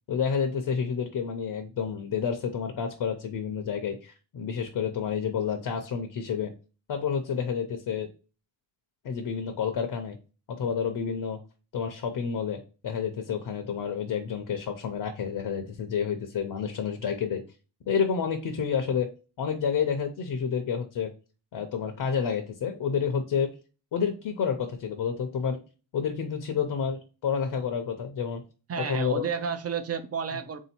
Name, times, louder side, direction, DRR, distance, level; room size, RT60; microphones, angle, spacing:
voice 1, 0.1-6.5 6.9-8.1 9.0-10.2 10.5-11.4 11.7-17.4 17.9-19.1 19.4-21.1 21.5-23.5 23.9-25.6 25.9-28.4 28.8-29.2, left 7 dB, 60° left, 0.7 m, -29 dB
voice 2, 28.7-30.6, right 6 dB, 35° right, 0.5 m, -31 dB
3.8 x 2.8 x 4.3 m
wide cardioid pair, 180°, 46 cm